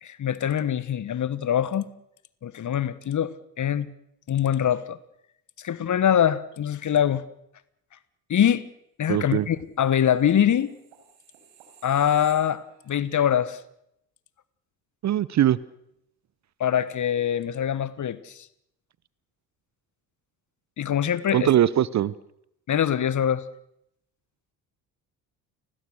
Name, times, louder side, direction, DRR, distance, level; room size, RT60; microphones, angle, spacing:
voice 1, 0.0-1.9 2.4-3.3 3.6-3.9 4.3-5.0 5.6-7.2 8.3-8.6 9.0-10.7 11.8-13.6 16.6-18.5 20.8-21.5 22.7-23.4, left 9 dB, 35° left, 18 dB, 1.3 m, -23 dB
voice 2, 9.1-9.5 15.0-15.6 21.3-22.1, right 11 dB, 35° right, 21 dB, 0.7 m, -21 dB
sound 1, 10.1-13.0 13.4-13.5, right 8 dB, 65° right, 5.0 m, -54 dB
30.0 x 16.5 x 6.5 m, 0.77 s
figure-of-eight pair, 50°, 48 cm